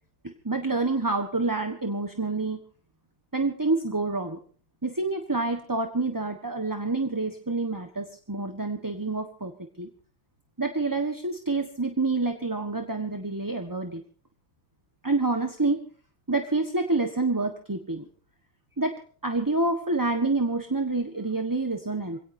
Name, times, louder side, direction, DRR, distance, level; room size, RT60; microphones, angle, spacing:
voice 1, 0.2-2.6 3.3-4.4 4.8-9.5 9.8-9.9 10.6-14.0 15.0-15.8 16.3-18.0 18.8-22.2, right 3 dB, 10° right, 5 dB, 1.2 m, -27 dB
27.0 x 17.5 x 2.8 m, 0.43 s
omnidirectional pair, 2.1 m